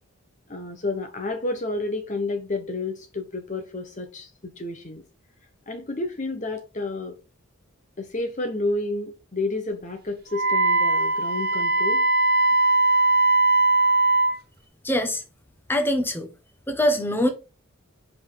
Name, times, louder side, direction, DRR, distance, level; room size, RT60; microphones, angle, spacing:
voice 1, 0.5-5.0 5.7-7.2 8.0-12.1, left 2 dB, 35° left, 1.0 m, -30 dB
Wind instrument woodwind instrument, 10.3-14.4, right 2 dB, 45° right, 1.1 m, -20 dB
voice 2, 14.8-15.2 15.7-16.3 16.7-17.3, left 1 dB, 10° left, 1.2 m, -23 dB
5.5 x 5.3 x 5.6 m
head